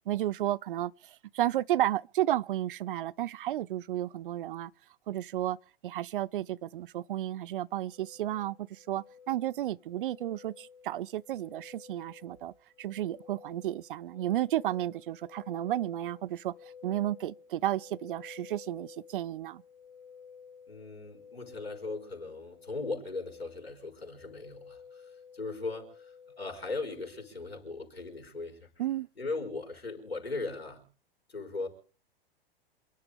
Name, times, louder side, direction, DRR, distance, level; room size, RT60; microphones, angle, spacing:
voice 1, 0.1-4.7 5.1-5.6 5.8-12.5 12.8-16.5 16.8-19.6 28.8-29.1, right 13 dB, 60° right, 0.6 m, -32 dB
sound 1, 7.9-27.3, left 6 dB, 20° left, 2.4 m, -53 dB
voice 2, 20.7-28.7 29.2-30.8 31.3-31.7, left 3 dB, 90° left, 4.9 m, -38 dB
28.0 x 11.0 x 3.6 m
figure-of-eight pair, 95°, 30 cm